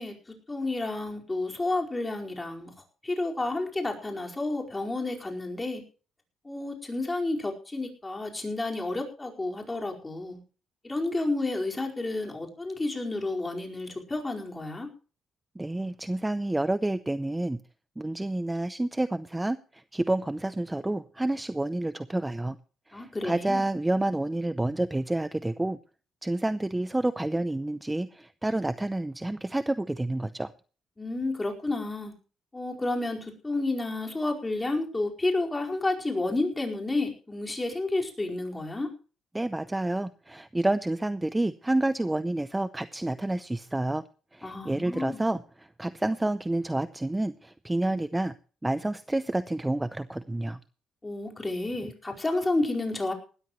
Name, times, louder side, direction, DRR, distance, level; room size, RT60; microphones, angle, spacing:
voice 1, 0.0-2.7 3.0-5.8 6.4-10.4 10.8-14.9 22.9-23.6 31.0-32.1 32.5-38.9 44.4-45.2 51.0-53.1, left 2 dB, 20° left, 1 dB, 4.8 m, -30 dB
voice 2, 15.6-17.6 18.0-22.6 22.9-25.8 26.2-30.5 39.3-44.0 44.3-48.3 48.6-50.6, right 1 dB, 10° right, 13 dB, 0.6 m, -29 dB
19.0 x 13.5 x 3.1 m, 0.38 s
cardioid pair, 90°, 0 cm